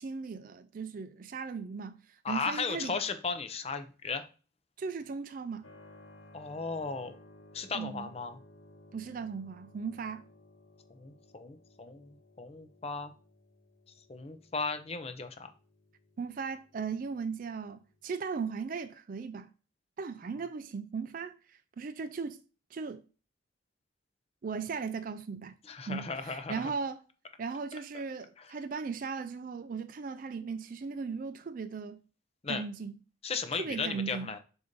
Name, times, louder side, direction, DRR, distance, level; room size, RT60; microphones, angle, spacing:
voice 1, 0.0-3.0 4.8-5.7 7.7-8.1 8.9-10.2 16.2-19.5 20.0-22.4 22.7-23.0 24.4-25.5 25.9-27.0 27.4-32.0 32.5-33.0 33.5-34.3, right 5 dB, 45° right, 0.4 m, -37 dB
voice 2, 2.2-4.3 6.3-7.2 7.5-8.4 11.0-13.1 14.1-15.5 25.7-26.7 32.4-32.6 33.2-34.4, left 4 dB, 35° left, 0.6 m, -36 dB
Keyboard (musical), 5.6-18.0, left 1 dB, 90° left, 1.2 m, -58 dB
6.7 x 2.7 x 5.1 m
head